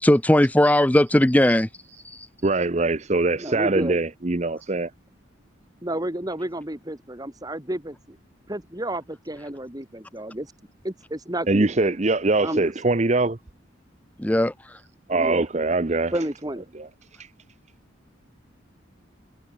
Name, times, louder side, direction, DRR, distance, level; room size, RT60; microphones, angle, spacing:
voice 1, 0.0-1.7 2.0-2.3 14.2-14.8, left 1 dB, 10° left, 0.6 m, -19 dB
voice 2, 2.4-4.9 11.5-13.4 15.1-16.3 16.7-16.9, right 2 dB, 35° right, 0.8 m, -22 dB
voice 3, 3.4-4.0 5.8-8.2 8.5-10.5 10.8-12.0 12.4-12.9 15.1-15.5 16.1-16.7, right 1 dB, 20° right, 2.1 m, -31 dB
head